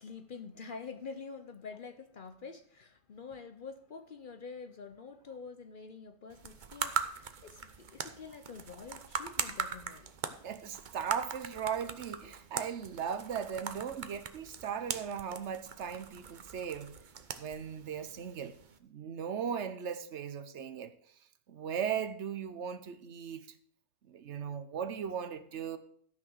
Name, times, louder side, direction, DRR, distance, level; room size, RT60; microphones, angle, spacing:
voice 1, 0.0-10.2, left 5 dB, 50° left, 0.7 m, -47 dB
sound 1, 6.3-18.8, right 6 dB, 45° right, 0.8 m, -41 dB
voice 2, 10.4-17.0 17.4-18.5 18.8-20.9 21.5-23.5 24.1-25.8, right 7 dB, 65° right, 1.1 m, -37 dB
13.0 x 5.8 x 6.2 m
omnidirectional pair, 1.3 m